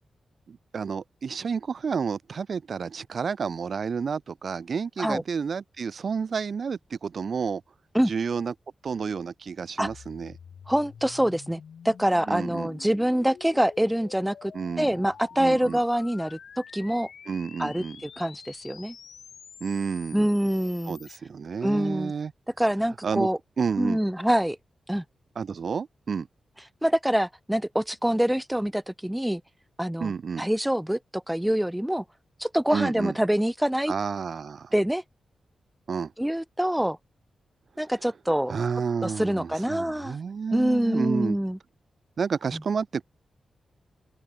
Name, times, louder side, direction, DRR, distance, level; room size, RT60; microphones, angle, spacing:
voice 1, 0.5-7.6 8.1-8.5 8.8-10.4 12.3-12.7 14.5-14.9 15.4-15.8 17.3-18.0 19.6-20.3 20.9-22.3 23.0-23.3 23.6-24.0 25.3-26.3 30.0-30.4 32.7-33.1 33.9-34.7 35.9-36.1 38.5-41.4 42.2-43.0, right 6 dB, 55° right, 3.4 m, -30 dB
sound 1, 9.8-21.2, left 7 dB, 70° left, 7.6 m, -47 dB
voice 2, 10.7-14.5 14.8-16.4 16.7-17.1 17.6-18.9 20.1-21.0 21.6-22.1 22.6-23.4 23.8-24.6 24.9-25.0 26.8-29.4 29.8-32.0 32.4-33.9 34.7-35.0 36.2-37.0 37.8-38.5 39.0-40.2 40.5-41.6 42.5-42.6, equal, 5° right, 1.5 m, -25 dB
wide cardioid pair, 110°, 0 cm